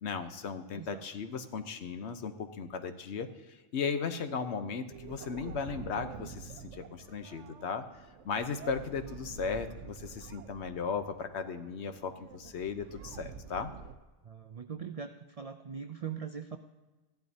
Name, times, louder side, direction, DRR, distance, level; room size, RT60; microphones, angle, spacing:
voice 1, 0.0-7.8 8.2-13.7, left 5 dB, 70° left, 9 dB, 1.0 m, -36 dB
voice 2, 0.7-1.0 14.2-16.6, right 7 dB, 65° right, 7 dB, 0.3 m, -41 dB
sound 1, 4.9-13.9, right 6 dB, 85° right, 1.0 m, -48 dB
15.5 x 11.5 x 2.7 m, 1.2 s
omnidirectional pair, 1.2 m